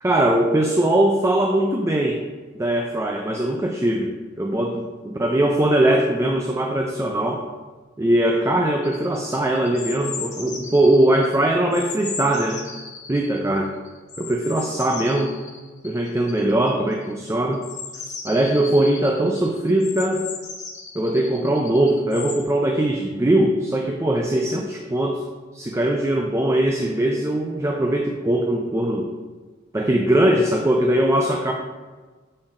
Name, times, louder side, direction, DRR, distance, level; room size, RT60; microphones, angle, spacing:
voice 1, 0.0-2.2 2.6-7.4 8.0-12.6 13.1-13.7 14.2-15.3 15.8-17.6 17.9-20.2 20.9-25.2 25.5-29.1 29.7-31.5, right 1 dB, 15° right, 2 dB, 0.4 m, -21 dB
sound 1, 8.8-11.4 11.7-22.4, left 5 dB, 40° left, 1.0 m, -36 dB
6.3 x 4.4 x 3.7 m, 1.4 s
head